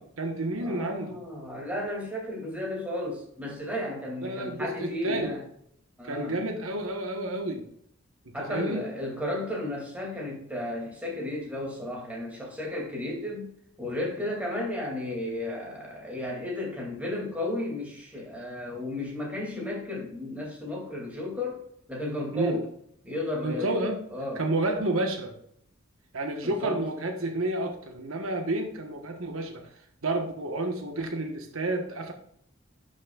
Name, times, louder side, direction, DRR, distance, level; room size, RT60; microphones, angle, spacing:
voice 1, 0.0-1.2 4.2-5.3 6.0-7.7 8.3-8.8 22.3-22.6 23.4-24.0 24.4-25.3 26.1-29.7 30.0-32.1, right 2 dB, 80° right, 4 dB, 1.3 m, -30 dB
voice 2, 0.6-5.4 6.0-6.4 8.3-13.5 13.8-21.6 21.9-22.7 23.0-24.4 26.4-26.8, left 1 dB, 5° right, -3 dB, 2.5 m, -33 dB
11.5 x 6.2 x 2.4 m, 0.69 s
head